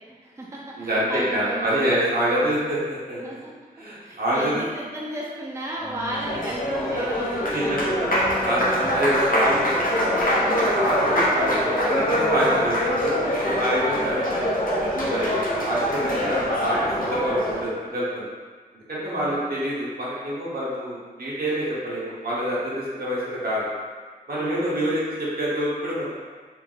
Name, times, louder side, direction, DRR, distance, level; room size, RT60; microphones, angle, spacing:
voice 1, 0.1-1.9 3.2-3.5 4.0-7.9 8.6-8.8 13.2-13.5 19.0-19.4, right 1 dB, 20° right, -4 dB, 0.5 m, -34 dB
voice 2, 0.8-3.4 3.7-4.5 7.5-10.1 10.7-13.1 13.6-14.2 14.9-18.3 18.9-23.7 24.3-26.2, equal, 75° right, -8 dB, 1.2 m, -26 dB
Applause, 5.9-17.7, equal, 65° left, 0.8 m, -24 dB
4.4 x 2.0 x 3.9 m, 1.5 s
wide cardioid pair, 85°, 16 cm